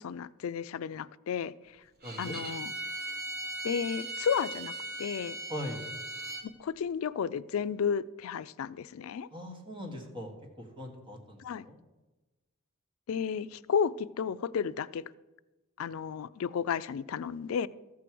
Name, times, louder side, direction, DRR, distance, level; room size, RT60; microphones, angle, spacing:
voice 1, 0.0-1.5 2.2-2.7 3.6-4.7 5.0-5.4 6.6-9.3 11.4-11.7 13.1-15.0 15.8-17.7, left 7 dB, 80° left, 17 dB, 0.4 m, -32 dB
voice 2, 2.0-2.4 5.5-5.8 9.3-11.8, equal, 25° right, 2 dB, 1.7 m, -41 dB
Bowed string instrument, 2.0-6.5, right 2 dB, 45° right, 1.5 m, -38 dB
14.0 x 4.7 x 7.7 m, 1.1 s
head